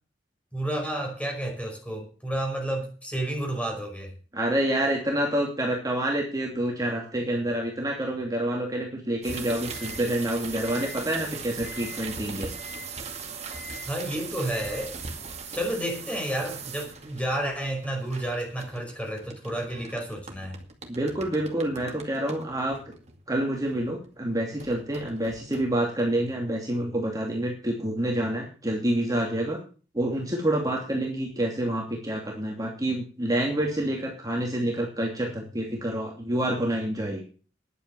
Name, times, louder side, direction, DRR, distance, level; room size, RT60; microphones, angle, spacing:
voice 1, 0.5-4.1 13.8-15.0 15.5-20.6, right 1 dB, 5° left, 1 dB, 5.2 m, -31 dB
voice 2, 4.3-12.5 20.9-22.8 23.3-29.6 29.9-37.2, right 1 dB, 20° right, -1 dB, 2.7 m, -28 dB
sound 1, 9.2-24.1 24.6-26.0, right 4 dB, 40° right, 2.4 m, -40 dB
11.0 x 9.0 x 7.6 m, 0.38 s
head